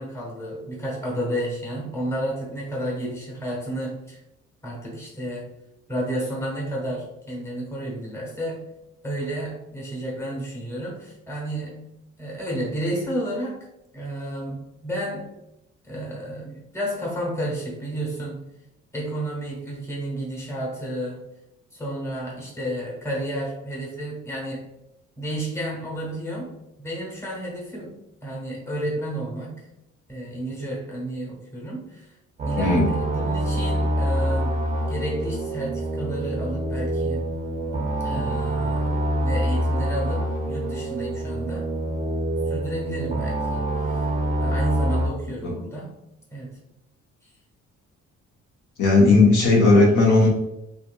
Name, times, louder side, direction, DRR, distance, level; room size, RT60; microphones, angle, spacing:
voice 1, 0.0-4.2 4.6-5.5 5.9-8.7 9.0-11.9 12.2-13.6 13.9-15.3 15.8-18.4 18.9-21.2 21.7-24.7 25.2-28.0 28.2-29.7 30.1-32.1 32.4-37.3 38.0-44.1 44.4-45.9 46.3-46.6 47.2-47.3, right 1 dB, 10° left, -4 dB, 1.0 m, -31 dB
sound 1, 32.4-45.1, right 1 dB, 25° right, 0.4 m, -26 dB
voice 2, 48.8-50.3, left 3 dB, 75° left, -3 dB, 1.0 m, -16 dB
2.7 x 2.5 x 2.3 m, 0.87 s
cardioid pair, 90°, 30 cm